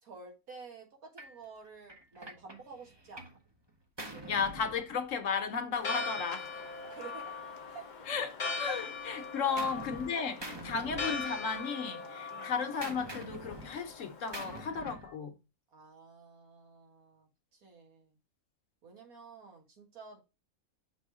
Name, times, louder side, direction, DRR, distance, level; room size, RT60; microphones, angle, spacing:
voice 1, 0.0-3.4 4.1-4.5 6.9-7.3 7.7-7.8 8.7-8.8 9.4-9.8 10.7-10.9 12.3-12.5 15.7-18.2 18.8-20.2, right 4 dB, 85° right, 2.1 m, -50 dB
Gunshot gunfire, 1.2-1.4 1.9-3.4 3.7-5.4 6.3-8.2 8.5-10.1 10.4-11.6 11.9-15.1, right 1 dB, 25° right, 0.7 m, -47 dB
voice 2, 4.3-6.6 8.1-15.3, left 6 dB, 65° left, 1.2 m, -34 dB
Church bell, 5.8-14.6, left 4 dB, 40° left, 0.7 m, -40 dB
6.2 x 3.3 x 4.7 m
omnidirectional pair, 1.5 m